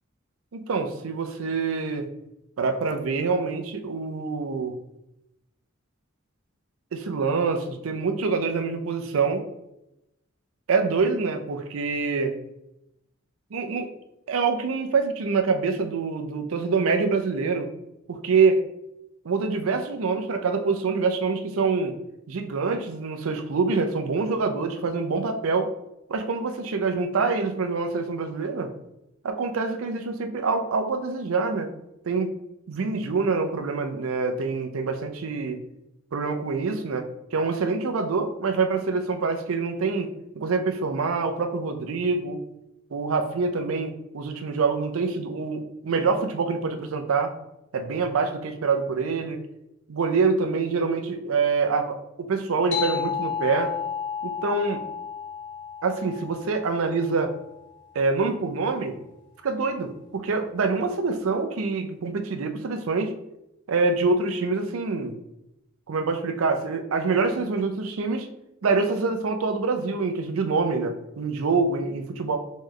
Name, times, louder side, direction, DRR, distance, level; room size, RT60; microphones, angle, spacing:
voice 1, 0.5-2.1 2.6-4.7 6.9-9.4 10.7-12.4 13.5-13.9 14.3-17.7 18.1-18.6 19.2-21.9 22.3-25.7 26.1-28.7 29.2-31.7 32.0-32.3 32.7-35.6 36.1-40.1 40.3-42.4 42.9-47.3 47.7-49.4 49.9-53.7 54.2-54.8 55.8-57.3 57.9-59.0 59.4-63.1 63.7-65.2 65.9-68.3 68.6-72.4, right 4 dB, 85° right, 7 dB, 0.5 m, -25 dB
sound 1, 52.7-57.7, left 7 dB, 60° left, 0.7 m, -32 dB
3.7 x 3.1 x 3.2 m, 0.84 s
head